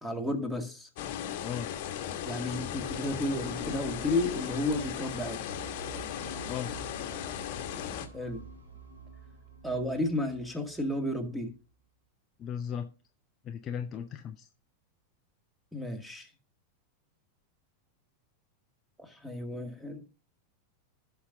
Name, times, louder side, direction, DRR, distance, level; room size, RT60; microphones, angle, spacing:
voice 1, 0.0-0.9 2.2-5.4 8.1-8.4 9.6-11.5 15.7-16.3 19.0-20.0, left 1 dB, ahead, 6 dB, 1.9 m, -32 dB
sound 1, 1.0-8.1, left 10 dB, 45° left, 1.2 m, -37 dB
sound 2, 3.3-11.4, right 3 dB, 75° right, 4.3 m, -48 dB
voice 2, 12.4-12.9 13.4-14.5, left 8 dB, 30° left, 8 dB, 0.6 m, -36 dB
15.5 x 5.9 x 2.6 m, 0.35 s
figure-of-eight pair, 90°, 0 cm